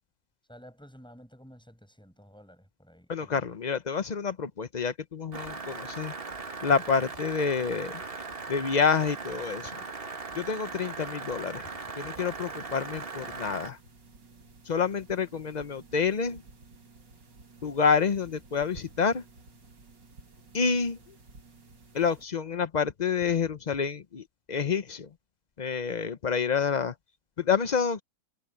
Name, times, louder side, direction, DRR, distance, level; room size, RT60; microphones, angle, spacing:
voice 1, 0.5-3.5, equal, ahead, 6.6 m, -52 dB
voice 2, 3.1-6.1 6.6-8.0 8.5-9.8 10.3-11.7 12.0-13.8 14.6-16.4 17.6-19.2 20.5-21.0 21.9-25.1 25.6-26.9 27.4-28.0, left 6 dB, 70° left, 0.4 m, -28 dB
sound 1, 5.3-13.7, right 4 dB, 35° right, 1.9 m, -39 dB
sound 2, 12.1-22.2, right 3 dB, 85° right, 3.4 m, -54 dB
omnidirectional pair, 1.9 m